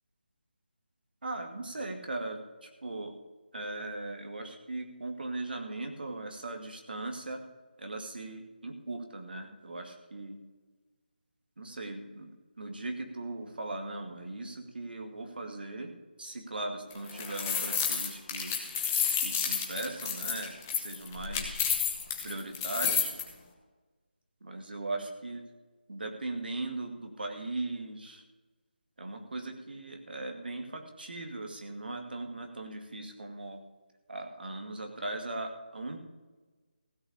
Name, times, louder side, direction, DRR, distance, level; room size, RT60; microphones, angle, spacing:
voice 1, 1.2-3.1 3.5-7.4 7.8-10.4 11.6-12.3 12.6-15.9 16.2-18.5 19.2-21.6 22.2-23.1 24.4-25.4 25.9-28.2 29.0-33.6 34.1-36.0, right 2 dB, 65° right, 4 dB, 2.2 m, -39 dB
sound 1, 16.9-23.2, left 7 dB, 15° left, 1.1 m, -30 dB
16.0 x 5.8 x 8.7 m, 1.3 s
figure-of-eight pair, 175°, 6 cm